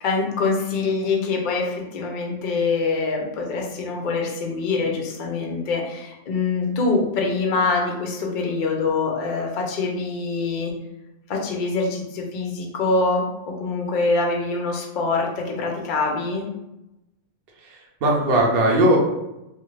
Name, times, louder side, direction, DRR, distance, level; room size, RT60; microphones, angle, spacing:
voice 1, 0.0-10.7 11.3-16.5, left 3 dB, 60° left, 0 dB, 0.5 m, -24 dB
voice 2, 17.6-19.0, right 1 dB, 55° right, -1 dB, 0.8 m, -19 dB
2.5 x 2.4 x 3.1 m, 0.92 s
omnidirectional pair, 1.5 m